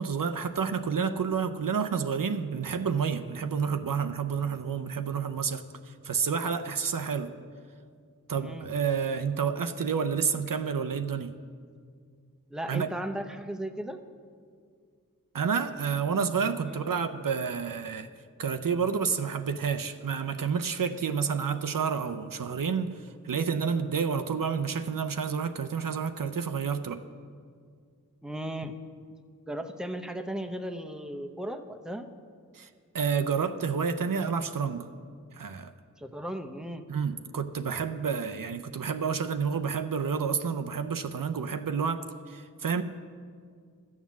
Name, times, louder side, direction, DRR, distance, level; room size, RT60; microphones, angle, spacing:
voice 1, 0.0-7.3 8.3-11.3 12.7-12.9 15.3-18.1 18.4-27.0 32.5-32.7 32.9-34.9 35.3-35.7 36.9-42.8, right 6 dB, 75° right, 9 dB, 0.6 m, -29 dB
voice 2, 8.4-8.7 12.5-14.0 16.7-16.9 28.2-28.7 29.5-32.1 36.0-36.8, right 1 dB, ahead, 7 dB, 0.8 m, -36 dB
12.0 x 7.3 x 7.3 m, 2.1 s
wide cardioid pair, 45°, 34 cm